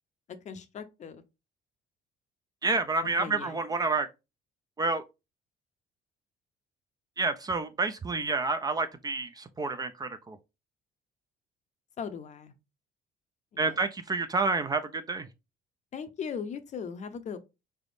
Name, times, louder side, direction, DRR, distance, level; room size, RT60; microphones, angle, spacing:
voice 1, 0.4-1.2 3.2-3.6 12.0-12.5 13.5-13.8 15.9-17.4, left 6 dB, 45° left, 0.6 m, -38 dB
voice 2, 2.6-4.1 4.8-5.0 7.2-10.4 13.6-15.3, right 3 dB, 25° right, 0.4 m, -29 dB
3.8 x 3.4 x 2.6 m
cardioid pair, 110°, 17 cm